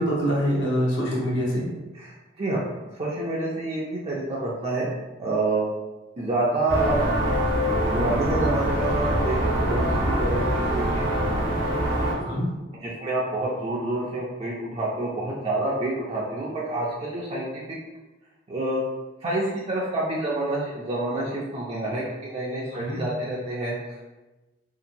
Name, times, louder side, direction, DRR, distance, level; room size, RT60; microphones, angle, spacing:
voice 1, 0.0-1.7 12.1-12.4 22.7-23.0, equal, 75° left, -5 dB, 0.9 m, -25 dB
voice 2, 2.9-4.9 5.2-5.7 6.2-7.0 7.9-11.2 12.8-17.5 18.5-18.8 19.2-23.7, right 2 dB, 35° right, -5 dB, 0.4 m, -28 dB
sound 1, 6.7-12.1, equal, 70° right, 1.0 m, -24 dB
2.8 x 2.5 x 2.6 m, 1.1 s
head